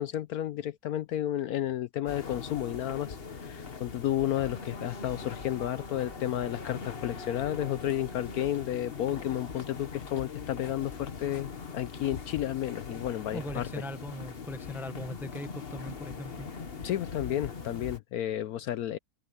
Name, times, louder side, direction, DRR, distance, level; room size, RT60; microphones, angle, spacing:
voice 1, 0.0-13.7 16.8-19.0, left 12 dB, 70° left, 1.0 m, -32 dB
sound 1, 2.1-18.0, left 5 dB, 40° left, 1.4 m, -41 dB
voice 2, 13.3-16.5, left 1 dB, ahead, 0.8 m, -40 dB
omnidirectional pair, 1.8 m